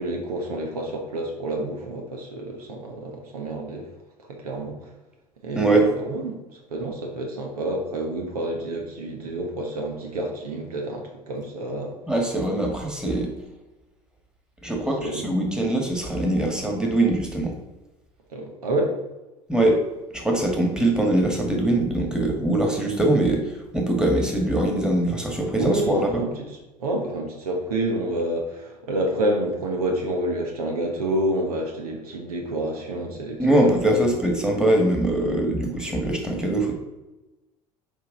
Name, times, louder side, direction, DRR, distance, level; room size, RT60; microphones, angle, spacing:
voice 1, 0.0-3.9 4.3-4.8 5.4-12.0 15.0-15.3 18.3-19.0 25.6-34.1, right 1 dB, 75° right, 2 dB, 1.2 m, -28 dB
voice 2, 5.5-5.9 12.1-13.3 14.6-17.5 19.5-19.8 20.1-26.2 33.4-36.7, right 1 dB, 5° right, 1 dB, 1.9 m, -22 dB
6.5 x 4.9 x 3.9 m, 1.0 s
figure-of-eight pair, 65°, 19 cm